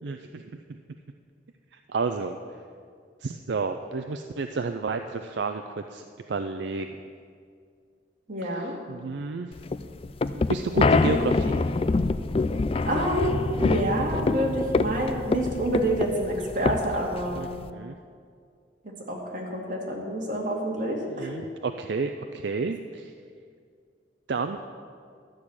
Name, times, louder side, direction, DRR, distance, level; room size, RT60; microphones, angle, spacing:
voice 1, 0.0-0.4 1.7-2.4 3.2-7.0 8.4-9.5 10.3-11.6 17.3-18.0 21.1-23.1 24.3-24.6, right 4 dB, 70° right, 7 dB, 0.5 m, -31 dB
voice 2, 8.3-8.7 12.8-17.5 19.1-21.3, right 1 dB, 45° right, -2 dB, 2.2 m, -28 dB
sound 1, 9.6-17.7, left 3 dB, 30° left, 0.3 m, -26 dB
12.0 x 6.4 x 8.7 m, 2.2 s
head